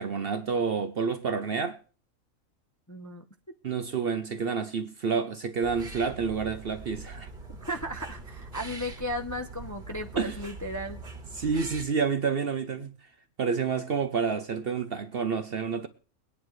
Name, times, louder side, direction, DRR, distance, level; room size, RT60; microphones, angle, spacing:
voice 1, 0.0-1.8 3.6-7.3 10.2-10.4 11.4-12.9 13.4-15.9, right 5 dB, 50° right, 0.8 m, -29 dB
voice 2, 2.9-3.2 7.5-11.0, equal, 20° left, 0.6 m, -35 dB
sound 1, 5.6-11.8, right 3 dB, 35° right, 2.1 m, -43 dB
22.5 x 9.6 x 3.2 m
omnidirectional pair, 1.5 m